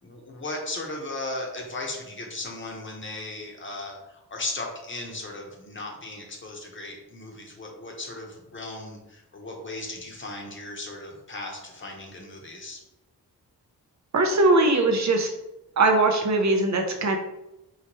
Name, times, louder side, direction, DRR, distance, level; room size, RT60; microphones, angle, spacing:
voice 1, 0.0-12.8, left 2 dB, 30° left, 0 dB, 0.8 m, -36 dB
voice 2, 14.1-15.3 15.8-17.2, right 2 dB, 50° right, 3 dB, 0.5 m, -20 dB
4.6 x 3.3 x 2.9 m, 0.93 s
wide cardioid pair, 175°, 38 cm